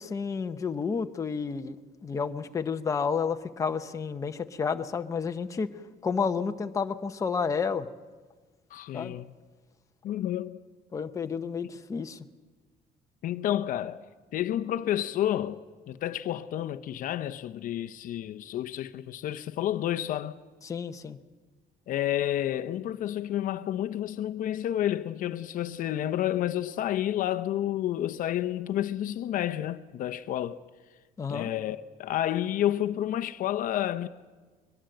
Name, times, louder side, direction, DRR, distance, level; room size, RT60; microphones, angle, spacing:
voice 1, 0.0-1.8 2.0-5.7 6.0-7.9 8.9-9.2 10.9-12.2 20.6-21.2 31.2-31.5, left 5 dB, 20° left, 0.7 m, -30 dB
voice 2, 8.7-9.3 10.0-10.6 13.2-14.0 14.3-20.4 21.9-30.6 31.3-34.1, left 12 dB, 55° left, 0.7 m, -30 dB
22.0 x 22.0 x 7.8 m
cardioid pair, 180°, 17 cm